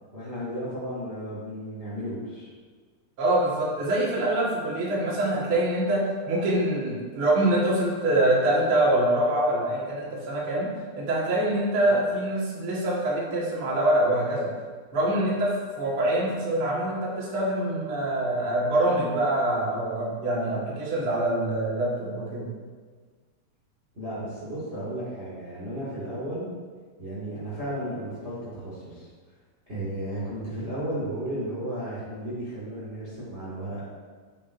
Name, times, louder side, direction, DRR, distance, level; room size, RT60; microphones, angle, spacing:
voice 1, 0.1-2.5 11.8-11.9 23.9-26.5 27.0-29.1 29.7-33.8, right 1 dB, 30° right, -9 dB, 1.3 m, -34 dB
voice 2, 3.2-14.5 14.9-22.5, right 1 dB, 50° right, -6 dB, 1.7 m, -25 dB
8.8 x 8.2 x 2.7 m, 1.5 s
omnidirectional pair, 5.0 m